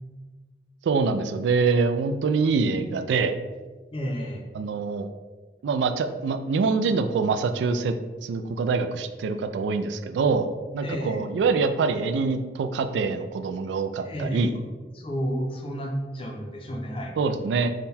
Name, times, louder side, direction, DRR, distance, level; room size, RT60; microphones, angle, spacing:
voice 1, 0.8-3.4 4.5-5.1 5.6-8.0 8.2-10.5 10.7-14.5 17.2-17.7, right 4 dB, 80° right, 8 dB, 0.3 m, -25 dB
voice 2, 3.9-4.5 10.8-11.3 14.0-14.6 14.9-17.1, equal, 30° left, 1 dB, 0.5 m, -31 dB
3.7 x 2.2 x 4.1 m, 1.3 s
head